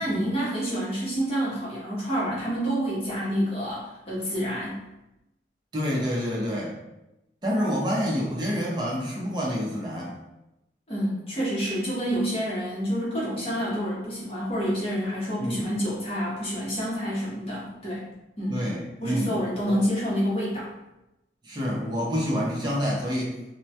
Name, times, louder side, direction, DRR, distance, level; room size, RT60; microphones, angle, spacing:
voice 1, 0.0-4.8 10.9-18.1 18.4-18.7 19.0-20.7, equal, 35° left, -7 dB, 0.8 m, -28 dB
voice 2, 5.7-6.8 7.4-10.2 15.4-15.7 18.5-19.4 19.6-19.8 21.4-23.4, equal, 25° right, -4 dB, 0.5 m, -28 dB
2.1 x 2.1 x 2.7 m, 0.92 s
head